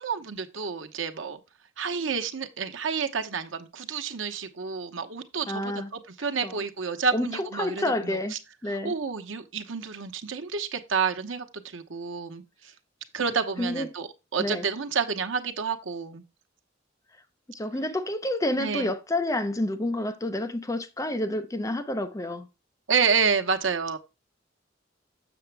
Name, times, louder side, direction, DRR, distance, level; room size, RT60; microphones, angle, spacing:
voice 1, 0.0-1.4 1.8-8.4 8.7-12.4 13.1-16.2 18.6-18.9 22.9-24.0, right 5 dB, 85° right, 1.0 m, -29 dB
voice 2, 5.5-5.9 6.4-6.6 7.1-8.4 8.6-8.9 13.6-13.9 14.4-14.7 17.5-22.5, left 1 dB, 15° left, 0.6 m, -29 dB
7.0 x 7.0 x 3.3 m
head